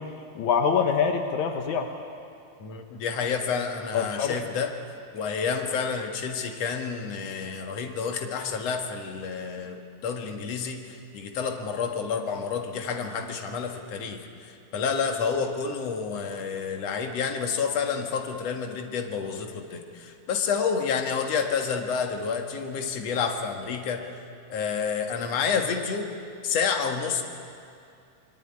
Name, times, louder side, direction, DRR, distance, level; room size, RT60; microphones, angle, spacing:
voice 1, 0.0-1.9 3.9-4.4, left 6 dB, 75° left, 4 dB, 2.7 m, -25 dB
voice 2, 2.6-4.7 5.1-24.1 24.5-26.1 26.4-27.2, left 6 dB, 60° left, 4 dB, 2.8 m, -29 dB
26.0 x 22.0 x 9.8 m, 2.4 s
omnidirectional pair, 3.4 m